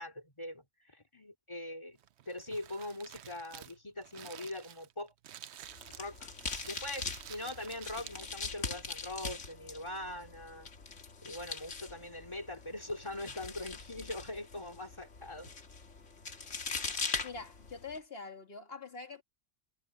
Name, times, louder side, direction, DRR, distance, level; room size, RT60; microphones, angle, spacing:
voice 1, 0.0-2.0 2.3-5.1 6.0-6.3 6.6-10.7 11.2-15.5, left 1 dB, 25° left, 2.6 m, -42 dB
Crumpling crinkling, 2.0-8.7, right 10 dB, 70° right, 0.9 m, -51 dB
sound 1, 5.6-18.0, left 4 dB, 85° left, 2.1 m, -42 dB
voice 2, 17.2-19.2, left 4 dB, 55° left, 2.5 m, -44 dB
omnidirectional pair, 1.2 m